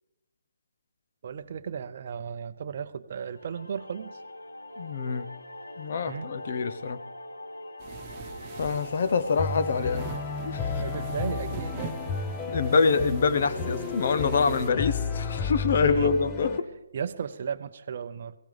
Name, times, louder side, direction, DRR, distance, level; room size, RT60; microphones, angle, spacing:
voice 1, 1.2-4.2 6.1-6.3 10.8-12.0 15.8-16.1 16.9-18.3, right 7 dB, 45° right, 9 dB, 0.6 m, -35 dB
sound 1, 3.3-14.4, left 1 dB, 80° left, 0.8 m, -42 dB
voice 2, 4.8-5.3 5.8-7.0 8.6-10.1 10.5-10.8 12.5-16.7, left 5 dB, 50° left, 12 dB, 0.8 m, -25 dB
sound 2, 7.8-14.7, right 5 dB, 25° right, 1.3 m, -43 dB
sound 3, 9.4-16.6, left 5 dB, 15° left, 0.8 m, -32 dB
21.0 x 16.0 x 3.4 m, 1.0 s
figure-of-eight pair, 150°, 0 cm